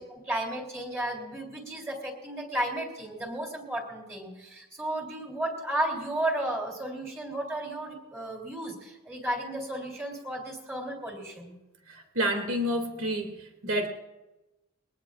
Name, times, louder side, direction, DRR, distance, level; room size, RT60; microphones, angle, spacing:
voice 1, 0.0-11.6, right 1 dB, 10° right, -2 dB, 3.2 m, -33 dB
voice 2, 11.9-13.9, equal, 75° right, 3 dB, 2.8 m, -29 dB
22.5 x 18.5 x 2.5 m, 1.0 s
head